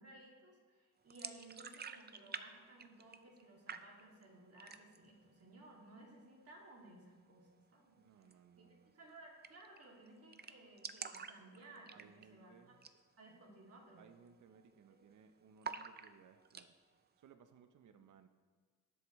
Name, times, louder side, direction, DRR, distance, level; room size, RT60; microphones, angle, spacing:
voice 1, 0.0-8.0 8.6-8.7 8.9-12.7 13.2-14.1, right 2 dB, 50° right, -1 dB, 2.5 m, -58 dB
sound 1, 1.1-2.5 2.7-3.4 3.7-4.2 4.6-5.1 5.4-5.5 5.9-6.5 8.2-8.4 8.7-8.8 9.0-9.1 9.4-9.8 10.1-10.2 10.3-12.4 12.7-13.0 13.3-13.4 14.0-14.3 14.5-15.1 15.6-16.7, right 6 dB, 30° right, 0.5 m, -48 dB
voice 2, 8.0-8.9 11.9-12.9 14.0-18.3, right 6 dB, 70° right, 8 dB, 0.7 m, -63 dB
19.5 x 8.1 x 3.1 m, 1.5 s
wide cardioid pair, 140°, 31 cm